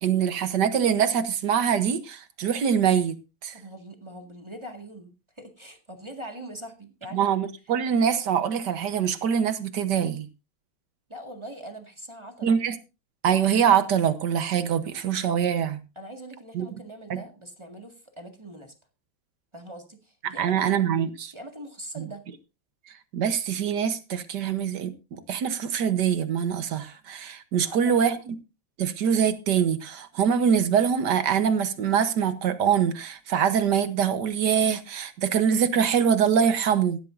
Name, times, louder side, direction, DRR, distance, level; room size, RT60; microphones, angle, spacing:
voice 1, 0.0-3.6 7.1-10.3 12.4-12.7 13.2-15.8 16.5-16.7 17.1-17.2 20.2-21.3 22.0-22.1 23.1-28.3 28.8-37.0, right 8 dB, 65° right, 1.5 m, -24 dB
voice 2, 3.5-7.2 11.1-12.6 16.0-18.7 19.5-20.7 21.3-22.2 27.7-28.2, right 1 dB, 15° right, 1.8 m, -42 dB
16.0 x 12.0 x 2.6 m
omnidirectional pair, 2.2 m